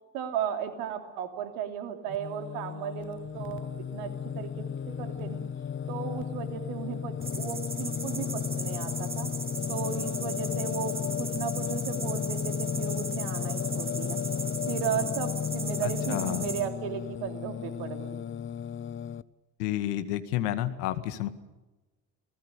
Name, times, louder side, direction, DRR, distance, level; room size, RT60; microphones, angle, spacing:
voice 1, 0.1-5.5 5.9-9.4 9.7-14.2 14.7-18.2, right 8 dB, 70° right, 6 dB, 3.2 m, -35 dB
Singing, 2.1-19.2, left 8 dB, 25° left, 0.8 m, -34 dB
sound 1, 7.2-16.6, right 2 dB, 20° right, 5.3 m, -38 dB
voice 2, 15.8-16.5 19.6-21.3, left 13 dB, 75° left, 11 dB, 1.9 m, -30 dB
28.0 x 19.5 x 6.7 m, 1.1 s
hypercardioid pair, 55°, 47 cm